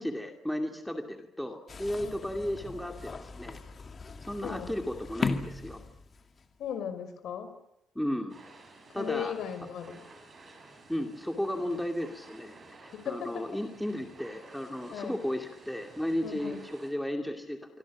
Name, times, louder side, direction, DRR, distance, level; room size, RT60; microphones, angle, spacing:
voice 1, 0.0-3.6 4.3-5.8 7.9-8.3 8.9-9.3 10.9-17.8, left 1 dB, ahead, 4 dB, 2.4 m, -34 dB
sound 1, 1.7-6.4, left 4 dB, 30° left, 2.2 m, -38 dB
voice 2, 4.4-4.7 6.6-7.5 8.9-10.0 13.0-13.3 14.9-15.2 16.2-16.6, left 9 dB, 60° left, 9 dB, 5.4 m, -37 dB
sound 2, 8.3-16.9, right 3 dB, 25° right, 6.9 m, -53 dB
27.0 x 25.0 x 7.3 m, 0.82 s
cardioid pair, 155°, 0 cm